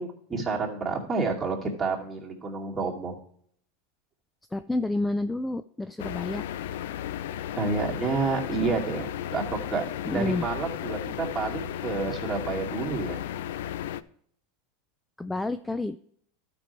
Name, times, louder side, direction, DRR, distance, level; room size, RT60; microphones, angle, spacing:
voice 1, 0.0-3.1 7.5-13.2, right 4 dB, 15° right, -2 dB, 2.5 m, -29 dB
voice 2, 4.5-6.4 10.1-10.4 15.2-16.0, left 2 dB, 5° left, 11 dB, 0.3 m, -29 dB
sound 1, 6.0-14.0, left 11 dB, 80° left, 0.4 m, -34 dB
12.0 x 5.3 x 4.5 m, 0.63 s
supercardioid pair, 125°, 0 cm